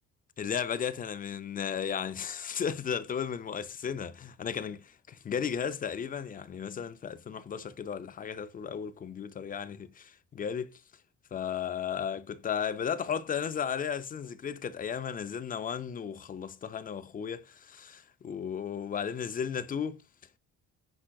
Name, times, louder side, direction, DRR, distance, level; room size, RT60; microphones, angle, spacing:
voice 1, 0.4-10.7 11.3-20.0, left 7 dB, 30° left, 0.4 m, -35 dB
5.6 x 3.6 x 2.3 m
cardioid pair, 90°, 30 cm